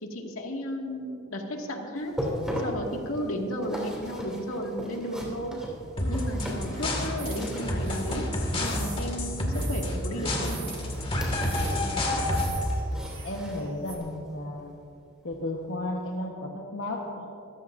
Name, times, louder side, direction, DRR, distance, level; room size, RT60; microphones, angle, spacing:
voice 1, 0.0-2.3 2.6-5.6 6.1-8.3 8.6-10.7, equal, 80° left, 1 dB, 2.1 m, -34 dB
sound 1, 2.0-8.7 10.1-11.9 12.2-14.2 14.6-14.8 15.3-15.4, equal, 5° right, 2.8 m, -38 dB
sound 2, 6.0-12.7, left 1 dB, 25° left, 2.0 m, -29 dB
sound 3, 7.2-14.0, right 7 dB, 45° right, 2.7 m, -46 dB
voice 2, 12.9-14.7 15.2-17.3, left 1 dB, 65° left, -2 dB, 1.3 m, -34 dB
26.0 x 14.5 x 2.6 m, 2.6 s
head